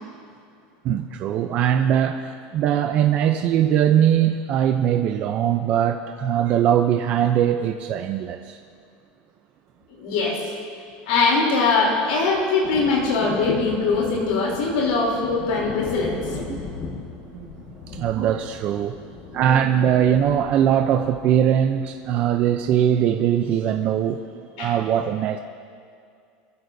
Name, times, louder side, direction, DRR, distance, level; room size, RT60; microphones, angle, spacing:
voice 1, 0.8-8.6 12.8-12.9 16.5-16.7 17.3-17.5 17.9-19.0 19.3-25.4, right 9 dB, 35° right, 6 dB, 0.5 m, -21 dB
voice 2, 10.0-10.4 11.1-16.2 24.6-24.7, left 4 dB, 75° left, -3 dB, 3.2 m, -21 dB
sound 1, 12.6-22.9, left 4 dB, 40° left, 1.5 m, -37 dB
23.5 x 15.5 x 2.7 m, 2.3 s
supercardioid pair, 170°, 4 cm